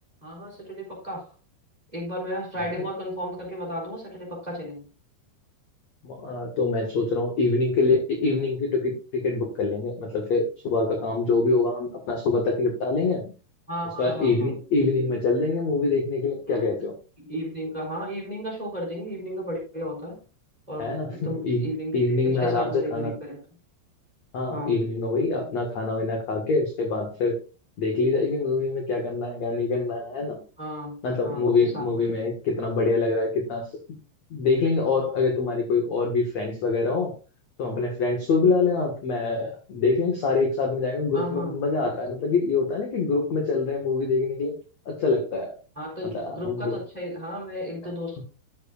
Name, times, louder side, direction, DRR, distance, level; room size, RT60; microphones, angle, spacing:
voice 1, 0.2-1.3 1.9-4.9 13.7-15.1 16.5-16.7 17.2-20.2 20.7-23.4 24.5-24.8 30.6-31.9 41.1-41.6 45.7-48.2, equal, 10° right, -1 dB, 3.2 m, -34 dB
voice 2, 6.0-13.3 14.0-16.9 20.8-21.7 21.9-23.1 24.3-27.4 27.8-30.4 31.0-33.7 34.3-37.2 37.6-44.5 44.9-45.6 46.1-46.8, left 3 dB, 55° left, 2 dB, 2.0 m, -25 dB
12.5 x 7.7 x 2.4 m, 0.32 s
omnidirectional pair, 5.3 m